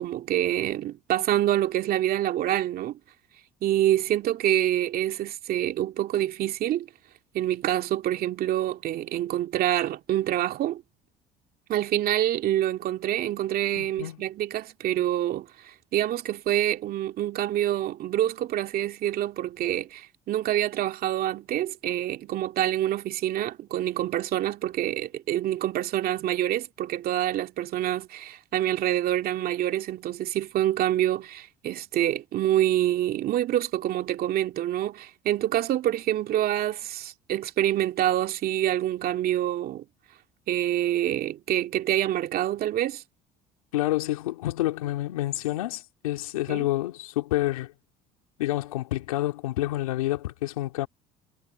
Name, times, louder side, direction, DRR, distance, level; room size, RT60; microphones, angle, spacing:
voice 1, 0.0-3.0 3.6-6.9 7.3-10.8 11.7-39.8 40.5-43.0 46.5-46.7, right 12 dB, 60° right, 2.6 m, -26 dB
voice 2, 13.7-14.3 43.7-47.7 48.4-50.9, left 16 dB, 90° left, 2.8 m, -28 dB
hypercardioid pair, 70°, 18 cm